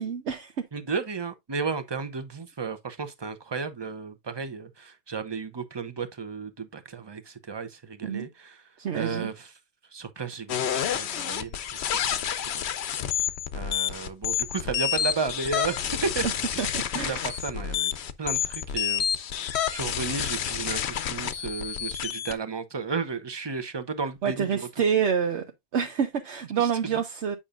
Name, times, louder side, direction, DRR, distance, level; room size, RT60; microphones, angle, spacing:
voice 1, 0.0-0.5 8.0-8.3 8.8-9.3 16.6-17.4 24.2-25.4 25.7-27.4, right 7 dB, 75° right, 1.1 m, -27 dB
voice 2, 0.7-8.6 8.9-9.5 9.9-12.7 13.5-16.2 16.5-16.7 17.1-17.9 18.2-19.2 19.7-24.7 26.6-26.7, right 4 dB, 25° right, 0.7 m, -33 dB
sound 1, 10.5-22.3, left 9 dB, 70° left, 0.9 m, -29 dB
8.6 x 5.5 x 2.5 m
omnidirectional pair, 1.2 m